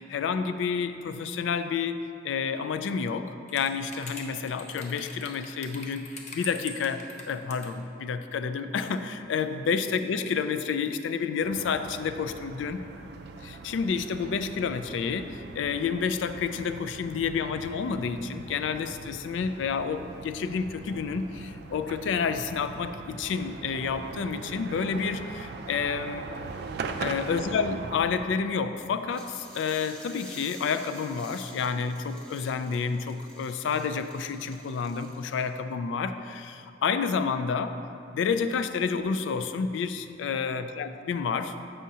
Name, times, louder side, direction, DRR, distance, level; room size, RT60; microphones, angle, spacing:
voice 1, 0.0-2.0 2.2-12.8 13.4-26.3 27.0-37.8 38.1-41.5, left 5 dB, 80° left, 10 dB, 0.3 m, -29 dB
sound 1, 3.5-7.7 8.8-9.1 9.4-9.5 10.0-10.1 10.8-11.0, left 3 dB, 40° left, 0.6 m, -42 dB
sound 2, 11.4-28.3, right 4 dB, 55° right, 0.3 m, -41 dB
sound 3, 29.1-35.6, right 1 dB, 5° left, 0.8 m, -49 dB
7.3 x 5.5 x 2.8 m, 2.6 s
head